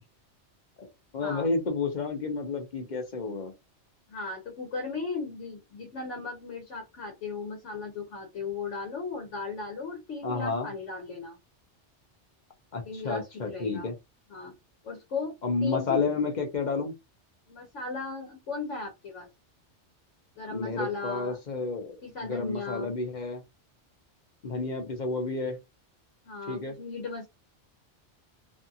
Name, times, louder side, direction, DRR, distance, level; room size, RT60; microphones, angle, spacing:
voice 1, 1.1-3.5 10.2-10.7 12.7-13.9 15.4-16.9 20.5-23.4 24.4-25.6 26.5-26.7, left 4 dB, 45° left, 0.7 m, -31 dB
voice 2, 4.1-11.4 12.8-13.9 14.3-14.5 14.8-15.4 15.6-16.0 17.5-19.3 20.4-21.3 22.0-22.9 26.3-27.3, left 4 dB, 85° left, 1.1 m, -36 dB
2.6 x 2.4 x 2.7 m
omnidirectional pair, 1.2 m